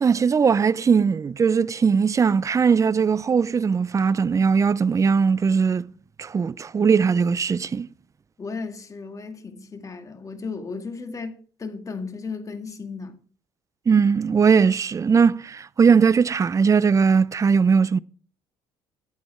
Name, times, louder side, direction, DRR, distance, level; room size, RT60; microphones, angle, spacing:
voice 1, 0.0-5.9 6.2-7.9 13.9-18.0, right 6 dB, 25° right, 0.5 m, -19 dB
voice 2, 8.4-13.2, left 4 dB, 30° left, 1.8 m, -35 dB
13.0 x 8.5 x 4.5 m
supercardioid pair, 80°, 12 cm